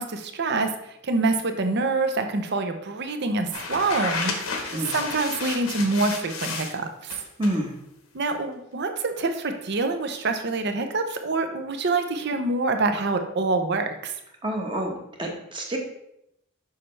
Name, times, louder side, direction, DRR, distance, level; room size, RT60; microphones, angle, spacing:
voice 1, 0.0-7.1 8.1-14.1, right 3 dB, 55° right, 7 dB, 0.7 m, -26 dB
sound 1, 3.5-6.7 7.1-7.6, left 4 dB, 85° left, 1.1 m, -32 dB
voice 2, 7.4-7.7 14.4-15.8, right 1 dB, 25° right, 1 dB, 1.0 m, -28 dB
6.6 x 5.5 x 3.2 m, 0.78 s
head